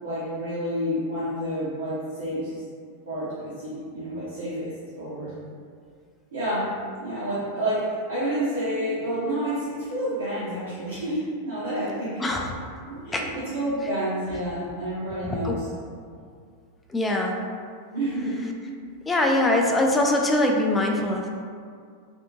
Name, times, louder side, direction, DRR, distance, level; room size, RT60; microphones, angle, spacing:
voice 1, 0.0-2.5 3.1-5.3 6.3-6.7 7.0-12.4 12.9-15.7 17.9-18.4, right 1 dB, 70° right, -11 dB, 0.7 m, -29 dB
voice 2, 12.2-12.5 13.1-13.3 15.2-15.6 16.9-17.4 19.1-21.3, left 1 dB, 15° left, 1 dB, 0.3 m, -23 dB
2.5 x 2.4 x 2.8 m, 2.2 s
figure-of-eight pair, 90°, 0 cm